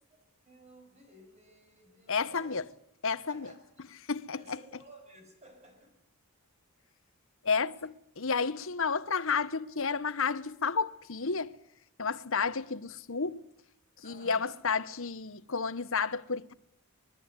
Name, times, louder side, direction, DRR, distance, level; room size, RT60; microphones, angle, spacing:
voice 1, 0.5-2.6 3.3-3.7 4.3-5.9 7.8-7.9 14.0-14.6, right 1 dB, 30° right, 7.5 m, -55 dB
voice 2, 2.1-2.7 3.0-3.5 4.1-4.6 7.4-11.5 12.0-13.4 14.0-16.5, left 5 dB, 60° left, 1.0 m, -31 dB
24.5 x 21.0 x 9.7 m
head